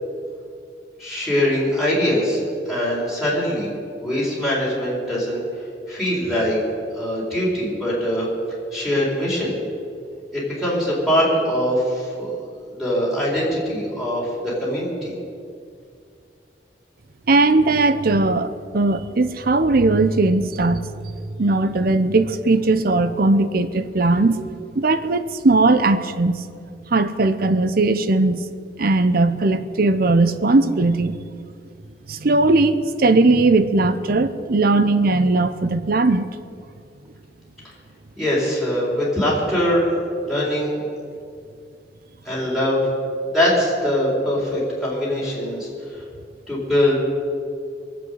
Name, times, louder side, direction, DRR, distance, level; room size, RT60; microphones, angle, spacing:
voice 1, 1.0-2.4 2.7-3.7 4.0-5.4 5.9-6.6 6.9-8.3 8.7-9.6 10.3-12.3 12.8-15.1 38.2-39.9 40.2-40.8 42.2-42.8 43.3-45.7 46.5-46.9, equal, ahead, -6 dB, 4.3 m, -22 dB
voice 2, 17.3-20.9 21.4-26.4 26.9-28.4 28.8-31.2 32.1-36.2, right 2 dB, 55° right, 12 dB, 0.7 m, -18 dB
22.5 x 7.7 x 8.0 m, 2.4 s
head